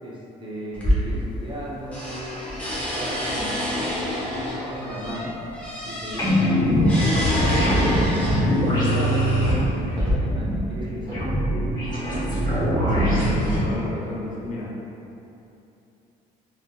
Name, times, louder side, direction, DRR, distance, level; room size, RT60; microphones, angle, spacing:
voice 1, 0.0-5.3 5.9-11.4, right 1 dB, 30° right, -5 dB, 0.6 m, -35 dB
sound 1, 0.7-1.6 1.9-8.7 9.5-10.1, left 1 dB, 10° left, 0.8 m, -28 dB
sound 2, 6.2-13.6, equal, 25° left, 1.4 m, -22 dB
voice 2, 12.9-14.7, left 2 dB, 50° left, -5 dB, 0.7 m, -30 dB
3.5 x 2.6 x 2.4 m, 2.8 s
cardioid pair, 110°, 17 cm